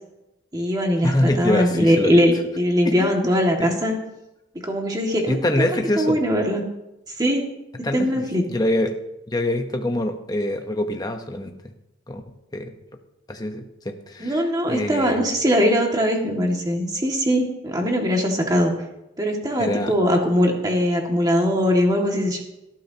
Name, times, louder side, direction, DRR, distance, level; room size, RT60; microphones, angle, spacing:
voice 1, 0.5-4.0 4.6-5.4 6.0-6.6 7.2-7.5 7.9-8.5 14.2-18.7 19.2-22.4, equal, 20° right, 1 dB, 2.0 m, -21 dB
voice 2, 1.0-2.2 2.8-3.1 3.6-3.7 5.3-6.2 7.8-9.0 9.3-11.5 12.1-12.2 12.5-12.7 13.3-15.2 19.6-19.9, left 1 dB, 20° left, 5 dB, 1.0 m, -25 dB
19.0 x 13.0 x 2.9 m, 0.92 s
head